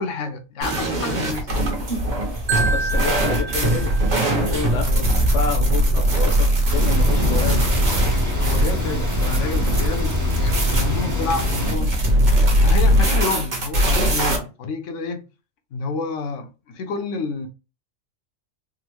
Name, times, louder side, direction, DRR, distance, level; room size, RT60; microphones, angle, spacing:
voice 1, 0.0-1.7 4.8-5.1 5.9-6.0 8.4-12.0 12.6-15.2 15.7-17.5, left 4 dB, 75° left, 0.9 m, -29 dB
sound 1, 0.6-14.4, right 1 dB, 40° right, 0.9 m, -20 dB
Marimba xylophone, 2.5-4.6, right 3 dB, 85° right, 1.0 m, -28 dB
voice 2, 2.7-3.9 4.2-7.7, left 6 dB, 40° left, 0.6 m, -29 dB
sound 2, 6.7-11.8, left 2 dB, 25° right, 0.5 m, -24 dB
3.6 x 2.0 x 3.0 m
omnidirectional pair, 1.3 m